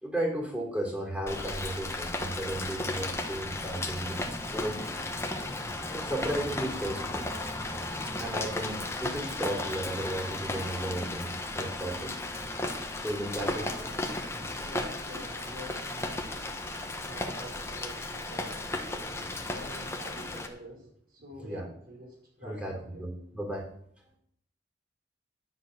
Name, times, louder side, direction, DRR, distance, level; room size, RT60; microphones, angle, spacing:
voice 1, 0.0-4.8 5.9-7.3 8.0-12.2 13.0-13.7 21.4-21.7 22.4-23.7, right 1 dB, 5° right, -1 dB, 3.2 m, -34 dB
Rain, 1.3-20.5, left 2 dB, 15° left, 1.3 m, -35 dB
voice 2, 13.3-16.6 17.0-18.7 19.0-23.1, equal, 55° right, -1 dB, 5.1 m, -46 dB
10.5 x 7.4 x 7.7 m, 0.67 s
head